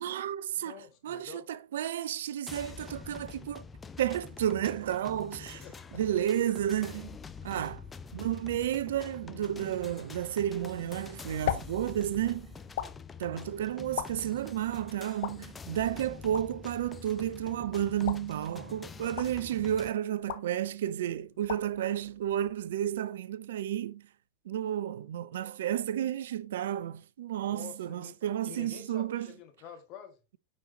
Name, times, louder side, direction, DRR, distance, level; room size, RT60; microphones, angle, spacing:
voice 1, 0.0-0.7 1.0-3.6 4.0-5.6 5.9-7.2 7.4-7.8 8.1-12.5 13.2-24.0 24.5-29.3, right 11 dB, 60° right, 0.3 m, -32 dB
voice 2, 0.6-1.5 5.4-6.0 21.3-21.5 27.5-28.2 28.5-30.2, left 8 dB, 40° left, 1.8 m, -48 dB
sound 1, 2.5-19.9, left 5 dB, 15° left, 0.5 m, -46 dB
sound 2, 10.8-23.0, left 12 dB, 55° left, 0.9 m, -42 dB
9.1 x 5.2 x 2.9 m
figure-of-eight pair, 90°, 0 cm